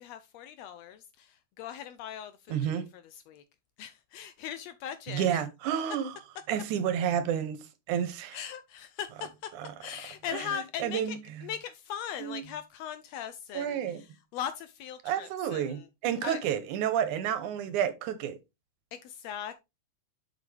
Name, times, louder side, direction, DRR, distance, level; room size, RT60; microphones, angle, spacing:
voice 1, 0.0-3.4 3.8-5.4 8.3-9.5 9.8-15.9 16.2-16.5 18.9-19.6, left 9 dB, 80° left, 1.6 m, -40 dB
voice 2, 2.5-2.8 5.1-6.1 6.5-7.6 7.9-8.4 10.8-11.2 12.2-12.4 13.5-14.0 15.0-18.4, right 9 dB, 85° right, 2.5 m, -30 dB
7.5 x 6.0 x 3.3 m
omnidirectional pair, 3.4 m